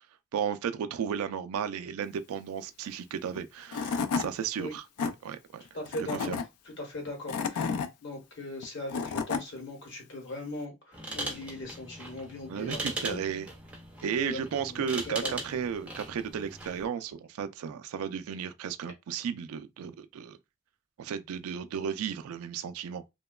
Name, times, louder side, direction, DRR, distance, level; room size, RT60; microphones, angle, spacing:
voice 1, 0.3-5.6 6.0-6.4 12.5-13.5 14.0-20.4 21.0-23.1, right 7 dB, 75° right, 0.3 m, -34 dB
Tools / Wood, 3.4-3.5 3.7-4.3 4.7-5.1 5.9-6.4 7.1-7.9 8.6-9.4, left 5 dB, 90° left, 0.4 m, -30 dB
voice 2, 5.7-6.4 6.8-12.8 13.1-13.2 14.2-15.3, left 1 dB, 55° left, 1.0 m, -39 dB
sound 1, 10.9-16.8, right 2 dB, 5° right, 0.4 m, -39 dB
2.9 x 2.1 x 2.2 m
head